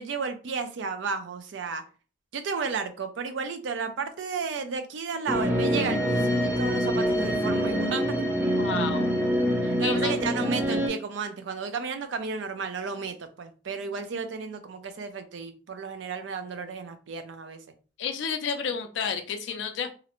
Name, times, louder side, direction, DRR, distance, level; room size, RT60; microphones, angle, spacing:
voice 1, 0.0-1.8 2.3-8.3 9.6-17.6, right 5 dB, 70° right, 8 dB, 0.4 m, -33 dB
sound 1, 5.3-10.9, equal, 10° right, 0.4 m, -25 dB
voice 2, 8.6-9.1 9.8-10.2 18.0-19.9, left 6 dB, 70° left, 7 dB, 0.3 m, -31 dB
2.5 x 2.0 x 2.9 m, 0.36 s
head